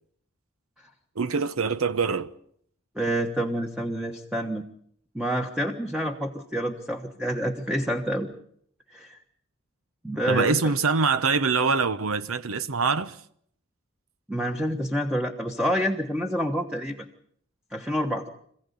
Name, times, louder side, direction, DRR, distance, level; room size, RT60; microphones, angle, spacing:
voice 1, 1.2-2.3 10.3-13.2, right 4 dB, 75° right, 0.9 m, -24 dB
voice 2, 2.9-4.6 5.1-8.3 8.9-9.2 10.0-10.6 14.3-17.1 17.7-18.3, equal, 5° right, 1.3 m, -28 dB
26.5 x 15.5 x 8.4 m
head